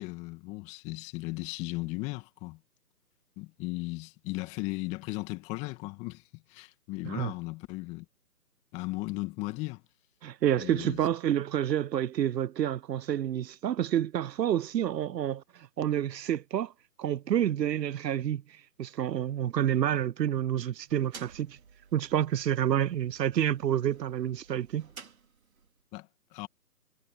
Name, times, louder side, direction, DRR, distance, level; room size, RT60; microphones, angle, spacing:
voice 1, 0.0-2.6 3.4-6.2 6.5-8.0 8.7-9.8 10.6-11.0 25.9-26.5, left 22 dB, 15° left, 2.3 m, -36 dB
voice 2, 10.2-16.7 17.0-18.4 18.8-21.6 21.9-24.9, right 10 dB, 80° right, 0.5 m, -29 dB
sound 1, 20.7-25.8, right 6 dB, 55° right, 4.8 m, -53 dB
figure-of-eight pair, 155°, 49 cm